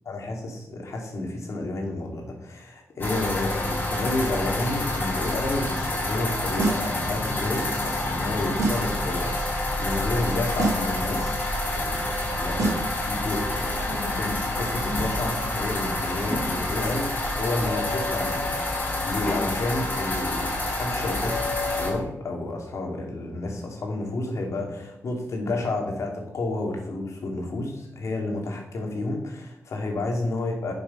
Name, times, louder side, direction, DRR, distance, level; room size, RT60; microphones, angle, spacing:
voice 1, 0.1-21.4 21.7-30.7, left 2 dB, 70° left, 1 dB, 2.6 m, -31 dB
sound 1, 3.0-21.9, left 2 dB, 35° left, 3.7 m, -28 dB
sound 2, 6.6-7.0 8.6-9.0 10.6-11.0 12.6-13.0, right 3 dB, 70° right, 2.4 m, -26 dB
10.5 x 6.7 x 5.7 m, 0.85 s
wide cardioid pair, 135°, 5 cm